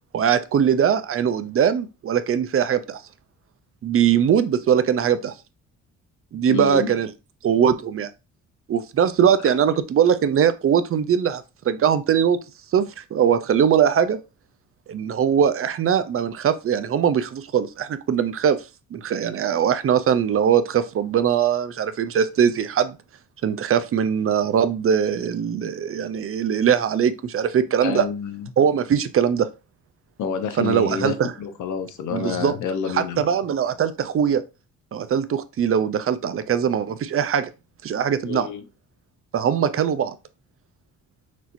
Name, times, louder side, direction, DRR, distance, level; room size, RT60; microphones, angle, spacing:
voice 1, 0.1-3.0 3.8-5.3 6.3-7.1 7.4-8.1 8.7-12.4 12.7-14.2 14.9-18.6 18.9-22.9 23.4-28.0 28.6-29.5 30.6-31.3 32.1-32.5 32.9-34.4 34.9-37.5 37.8-38.5 39.3-40.1, right 8 dB, 45° right, 0.6 m, -21 dB
voice 2, 6.5-6.9 9.4-9.5 27.8-28.5 30.2-33.3 38.2-38.7, left 6 dB, 75° left, 1.0 m, -28 dB
6.1 x 2.9 x 2.6 m
cardioid pair, 90°, 30 cm